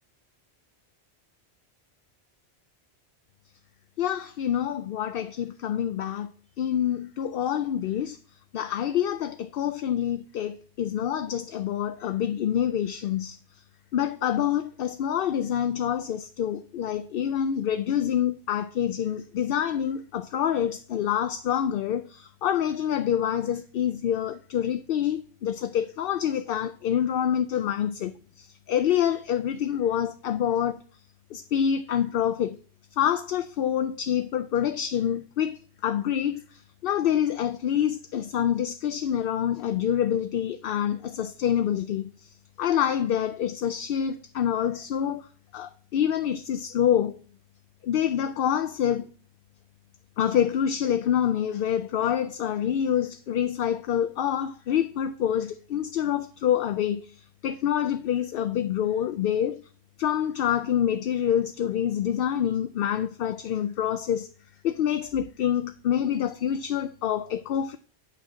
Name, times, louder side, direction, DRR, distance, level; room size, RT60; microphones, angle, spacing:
voice 1, 4.0-6.3 6.6-8.2 8.5-13.4 13.9-30.8 31.3-32.6 33.0-42.3 42.6-45.3 45.5-47.2 47.8-49.1 50.2-59.6 60.0-64.3 64.6-67.8, left 9 dB, 65° left, 0.7 m, -26 dB
8.8 x 4.4 x 6.8 m
omnidirectional pair, 1.1 m